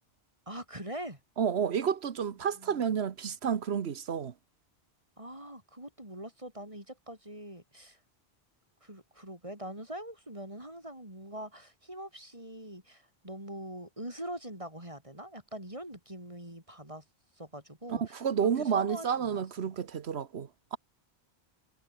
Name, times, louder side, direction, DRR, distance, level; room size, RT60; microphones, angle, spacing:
voice 1, 0.5-1.2 2.6-2.9 5.2-8.0 8.8-17.0 17.4-18.2 18.6-19.5, right 1 dB, 30° right, 5.4 m, -43 dB
voice 2, 1.4-4.3 17.9-20.8, right 7 dB, 85° right, 1.3 m, -30 dB
omnidirectional pair, 1.1 m